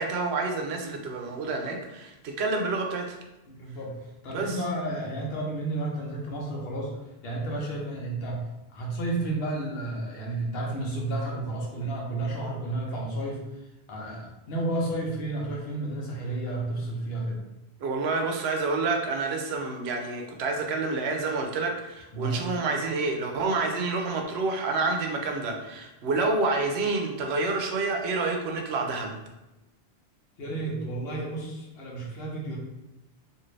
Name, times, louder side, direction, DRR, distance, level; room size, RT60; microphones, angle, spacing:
voice 1, 0.0-3.2 4.3-4.5 17.8-29.2, right 3 dB, 75° right, 3 dB, 0.8 m, -28 dB
voice 2, 3.5-4.0 4.2-6.9 7.2-8.4 8.7-13.4 13.9-17.4 22.1-22.4 30.4-32.6, right 2 dB, 70° left, -2 dB, 1.0 m, -31 dB
2.5 x 2.5 x 3.1 m, 0.97 s
omnidirectional pair, 1.1 m